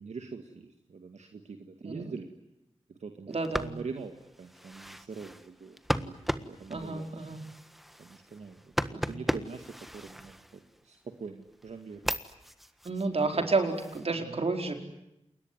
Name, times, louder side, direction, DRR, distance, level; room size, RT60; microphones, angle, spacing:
voice 1, 0.0-2.3 2.9-7.2 8.0-9.7 9.9-12.2 13.3-13.5 14.2-14.5, right 5 dB, 90° right, 5 dB, 2.0 m, -44 dB
sound 1, 3.3-11.0 11.4-14.1, equal, ahead, 1.5 m, -37 dB
voice 2, 3.3-3.7 6.7-7.4 8.9-9.1 12.8-14.8, right 3 dB, 65° right, 5 dB, 4.7 m, -30 dB
29.0 x 21.5 x 9.5 m, 0.87 s
cardioid pair, 50°, 11 cm